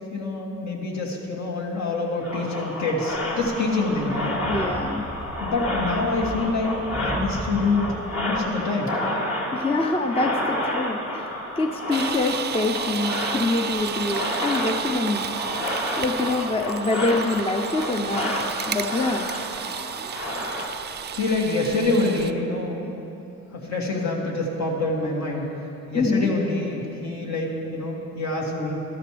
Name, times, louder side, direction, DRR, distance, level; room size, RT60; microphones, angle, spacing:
voice 1, 0.1-4.4 5.4-7.8 8.1-8.9 20.6-20.7 21.1-22.9 23.5-25.5 25.9-28.8, left 3 dB, 65° left, -2 dB, 2.5 m, -26 dB
sound 1, 2.2-20.7, left 1 dB, 45° left, 2.2 m, -30 dB
sound 2, 3.1-8.5, right 1 dB, 5° left, 1.0 m, -37 dB
voice 2, 4.5-5.0 9.5-15.2 16.0-18.3 18.7-19.3 25.9-26.3, left 3 dB, 20° left, 4 dB, 0.7 m, -25 dB
sound 3, 11.9-22.3, right 8 dB, 35° right, 0.4 m, -32 dB
13.5 x 13.0 x 3.4 m, 2.9 s
cardioid pair, 90°, 30 cm